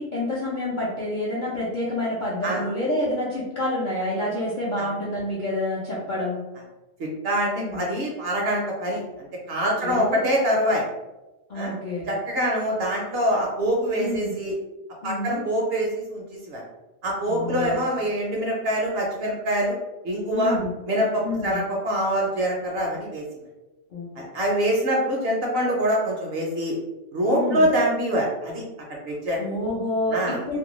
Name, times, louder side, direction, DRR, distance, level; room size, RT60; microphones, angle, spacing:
voice 1, 0.0-6.4 7.6-7.8 9.8-10.2 11.5-12.1 14.0-14.3 15.0-15.4 17.3-17.8 20.3-20.7 21.2-21.6 23.9-24.1 27.3-27.6 29.4-30.6, left 1 dB, 55° left, -6 dB, 0.5 m, -28 dB
voice 2, 7.2-9.0 9.5-10.8 11.5-11.7 12.1-14.5 15.0-16.6 17.0-19.8 20.0-20.5 20.9-23.2 24.2-26.7 27.1-28.6 28.9-29.4 30.1-30.4, equal, 60° right, -1 dB, 0.7 m, -24 dB
2.5 x 2.2 x 2.9 m, 1.0 s
omnidirectional pair, 1.3 m